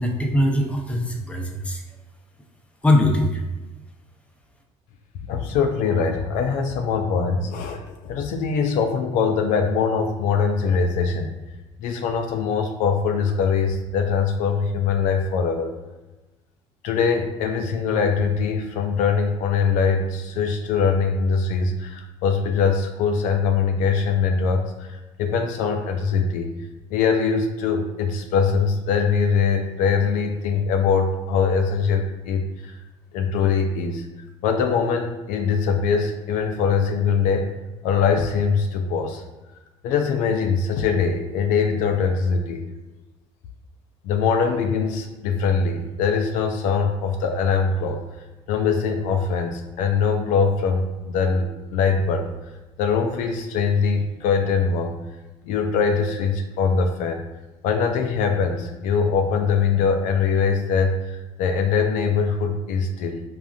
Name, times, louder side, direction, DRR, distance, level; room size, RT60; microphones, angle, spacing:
voice 1, 0.0-1.8 2.8-3.4, left 1 dB, 10° left, 1 dB, 0.6 m, -21 dB
voice 2, 5.3-11.3 11.8-15.7 16.8-26.5 26.9-32.8 33.1-34.0 34.4-37.5 37.8-39.2 39.8-42.6 44.0-48.0 48.5-52.3 52.8-55.0 55.4-57.2 57.6-63.2, left 5 dB, 70° left, 4 dB, 0.4 m, -22 dB
3.6 x 2.4 x 2.3 m, 1.1 s
supercardioid pair, 70°, 14 cm